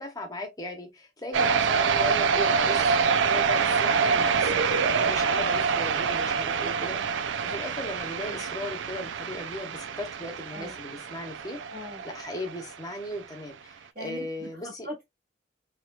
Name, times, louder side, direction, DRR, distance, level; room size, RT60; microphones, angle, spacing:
voice 1, 0.0-11.6 12.0-14.9, left 1 dB, 20° left, 1.0 m, -37 dB
sound 1, 1.3-12.8, right 6 dB, 80° right, 0.4 m, -26 dB
voice 2, 11.7-12.0 13.9-15.0, left 1 dB, 45° right, 2.6 m, -40 dB
4.2 x 3.0 x 2.3 m
head